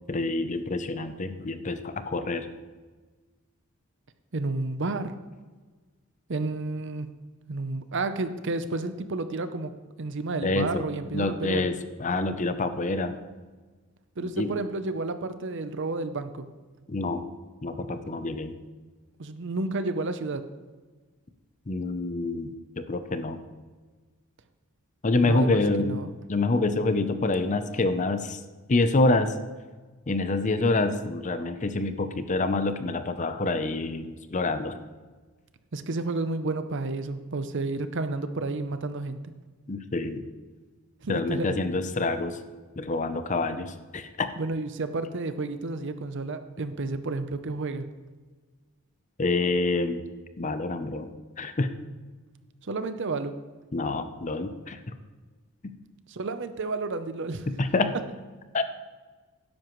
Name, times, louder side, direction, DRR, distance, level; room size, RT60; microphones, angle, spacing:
voice 1, 0.1-2.5 10.4-10.9 11.1-11.7 12.0-13.2 14.4-14.5 16.9-17.3 17.6-18.6 21.7-23.4 25.0-26.0 26.3-28.4 28.7-29.3 30.1-34.8 39.7-40.2 41.1-42.4 42.8-44.3 49.2-50.0 50.4-51.1 51.4-51.7 53.7-54.8 57.5-58.0 58.5-58.6, left 2 dB, 35° left, 10 dB, 0.6 m, -27 dB
voice 2, 4.3-5.1 6.3-7.1 7.5-9.7 10.0-11.6 14.2-16.5 19.2-20.4 25.2-26.1 35.7-39.2 41.0-41.6 44.4-47.9 52.6-53.3 56.1-57.5, right 3 dB, 55° right, 10 dB, 0.7 m, -31 dB
12.5 x 10.5 x 3.1 m, 1.3 s
head